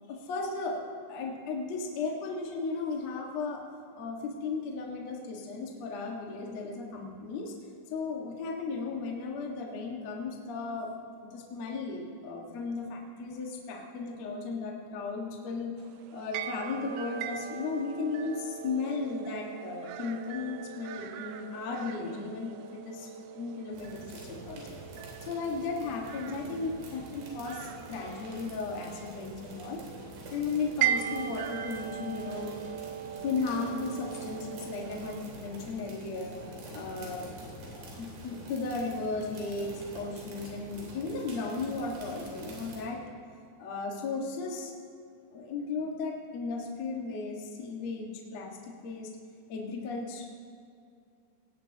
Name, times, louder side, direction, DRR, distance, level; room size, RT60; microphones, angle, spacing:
voice 1, 0.1-0.8 1.1-3.6 4.0-7.5 7.9-10.9 11.3-15.7 16.1-23.1 23.3-24.6 25.2-29.8 30.3-32.5 33.2-36.3 36.7-37.3 37.7-43.0 43.6-44.7 45.3-49.1 49.5-50.2, left 4 dB, 55° left, -1 dB, 1.9 m, -35 dB
sound 1, 15.8-35.2, right 10 dB, 90° right, 3.1 m, -39 dB
sound 2, 23.7-42.8, right 1 dB, 75° right, 5.3 m, -46 dB
18.0 x 17.5 x 2.9 m, 2.4 s
omnidirectional pair, 5.5 m